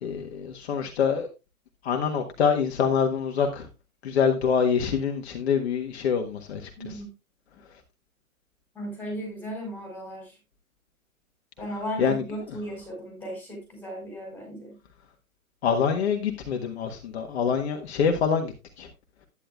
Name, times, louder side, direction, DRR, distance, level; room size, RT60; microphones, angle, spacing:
voice 1, 0.0-1.3 1.8-3.7 4.0-7.0 12.0-12.2 15.6-18.9, left 6 dB, 50° left, 1.5 m, -25 dB
voice 2, 6.8-7.1 8.8-10.4 11.6-14.7, equal, 5° left, 5.2 m, -36 dB
10.0 x 9.9 x 2.3 m
hypercardioid pair, 140°, 42 cm